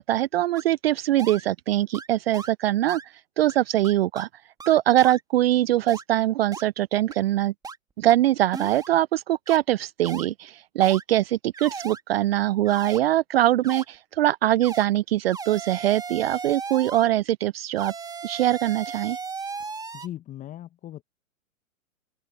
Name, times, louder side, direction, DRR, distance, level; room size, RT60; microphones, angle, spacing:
voice 1, 0.0-3.0 3.4-4.3 4.7-7.5 8.0-17.9 18.2-19.2, right 14 dB, 45° right, 0.5 m, -22 dB
sound 1, 0.6-0.7 1.2-1.4 1.9-2.1 2.3-2.5 2.9-3.1 3.5-3.6 3.8-4.3 4.6-5.2 5.9-6.0 6.5-6.6 7.1-7.2 7.6-7.8 8.1-8.2 8.5-8.9 9.5-9.6 10.0-10.3 10.8-11.0 11.5-12.0 12.7-13.0 13.6-13.8 14.6-14.9 15.3-17.1 17.8-20.1, right 5 dB, 10° right, 2.2 m, -36 dB
voice 2, 19.9-21.0, left 12 dB, 20° left, 1.1 m, -38 dB
open air
hypercardioid pair, 120°, 41 cm